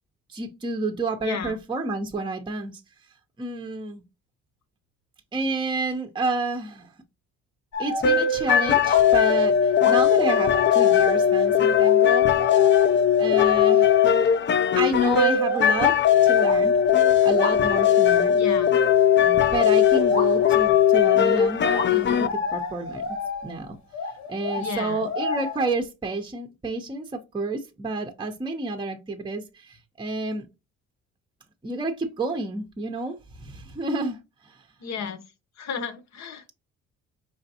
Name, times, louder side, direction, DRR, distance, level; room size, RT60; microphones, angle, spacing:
voice 1, 0.3-2.8 3.4-4.0 5.3-6.9 7.8-12.3 13.2-13.9 14.8-16.8 17.2-18.4 19.2-23.8 24.3-30.5 31.6-34.7, right 3 dB, 15° right, 0.6 m, -30 dB
voice 2, 1.2-1.5 18.3-18.7 24.6-25.1 34.8-35.2 35.6-36.5, left 7 dB, 65° left, 0.9 m, -33 dB
sound 1, 7.7-8.3 8.8-9.2 9.8-14.4 14.9-16.9 17.3-17.7 18.2-18.3 19.0-19.1 20.1-20.5 21.7-25.8, left 3 dB, 90° left, 1.5 m, -32 dB
sound 2, 8.0-22.3, left 8 dB, 40° left, 0.4 m, -19 dB
5.0 x 3.3 x 2.7 m
cardioid pair, 90°, 30 cm